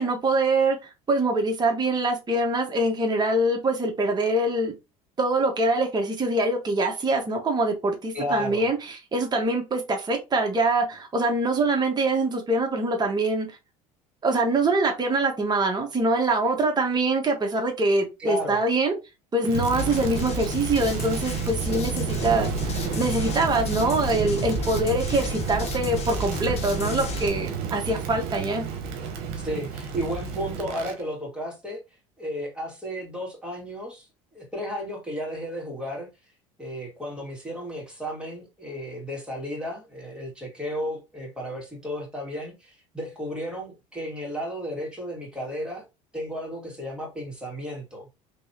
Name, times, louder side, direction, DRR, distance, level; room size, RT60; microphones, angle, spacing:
voice 1, 0.0-4.7 5.2-13.5 14.2-18.9 19.3-28.6, right 2 dB, 25° right, 1.3 m, -24 dB
voice 2, 8.1-8.7 18.2-18.6 29.3-31.8 32.2-34.1 34.3-36.1 36.6-45.9 46.1-48.1, equal, 5° right, 2.3 m, -33 dB
Crackle, 19.4-31.0, right 6 dB, 65° right, 1.1 m, -31 dB
sound 1, 19.5-27.3, left 4 dB, 40° left, 0.8 m, -33 dB
3.3 x 3.1 x 2.9 m
hypercardioid pair, 85°, 17 cm